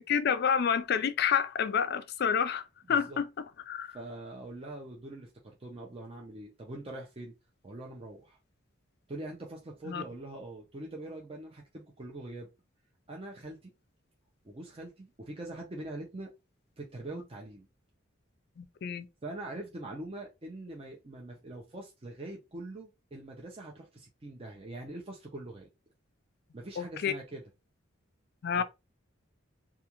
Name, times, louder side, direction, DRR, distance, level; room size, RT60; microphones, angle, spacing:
voice 1, 0.0-2.6 2.9-3.3 3.7-4.0 9.9-10.0 18.6-19.1 26.8-27.1 28.4-28.6, left 7 dB, 50° left, 0.4 m, -28 dB
voice 2, 3.9-7.3 7.6-8.4 9.1-12.5 13.1-13.7 14.4-16.3 16.8-17.7 19.2-25.7 26.5-27.4 28.5-28.6, right 2 dB, 30° right, 0.5 m, -43 dB
2.4 x 2.3 x 2.9 m
head